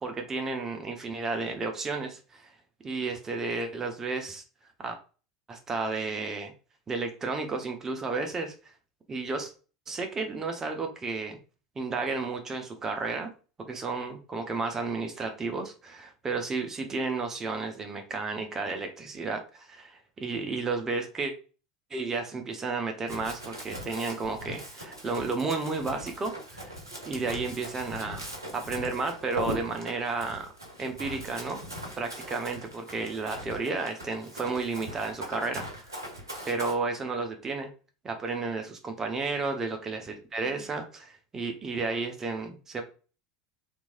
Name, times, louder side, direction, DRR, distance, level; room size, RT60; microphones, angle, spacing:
voice 1, 0.0-2.5 2.8-4.4 4.8-5.0 5.5-6.5 6.9-8.5 9.1-9.5 9.9-11.4 11.8-13.3 13.6-21.3 21.9-26.7 27.1-30.5 30.8-31.6 32.0-35.7 36.4-37.7 38.0-42.8, right 3 dB, 25° right, 5 dB, 0.7 m, -32 dB
Run, 23.1-36.7, right 1 dB, 85° right, 0.7 m, -41 dB
3.1 x 2.6 x 2.2 m, 0.36 s
figure-of-eight pair, 75°, 2 cm